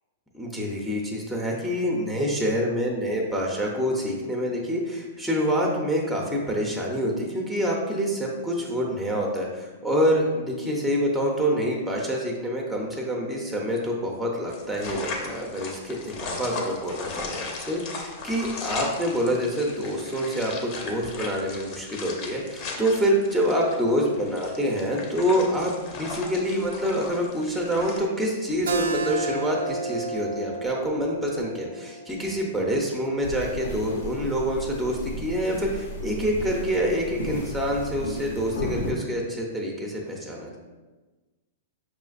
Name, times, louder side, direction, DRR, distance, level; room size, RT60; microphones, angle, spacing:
voice 1, 0.3-40.6, equal, ahead, -2 dB, 0.6 m, -26 dB
sound 1, 14.5-28.0, left 4 dB, 45° left, 0.7 m, -37 dB
Keyboard (musical), 28.7-33.9, right 3 dB, 90° right, 0.4 m, -32 dB
sound 2, 33.2-38.9, left 1 dB, 80° left, 0.7 m, -34 dB
5.7 x 2.4 x 2.4 m, 1.2 s
hypercardioid pair, 135°, 0 cm